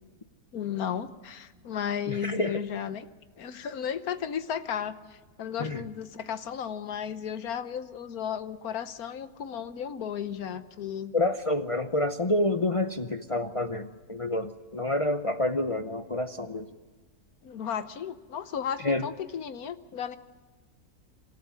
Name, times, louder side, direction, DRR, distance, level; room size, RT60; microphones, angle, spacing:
voice 1, 0.5-3.1 3.4-11.1 17.4-20.2, left 8 dB, 70° left, 12 dB, 1.4 m, -34 dB
voice 2, 2.1-2.6 5.6-5.8 11.1-16.7 18.8-19.1, left 1 dB, 40° left, 7 dB, 0.5 m, -28 dB
26.5 x 13.5 x 9.6 m, 1.4 s
omnidirectional pair, 1.6 m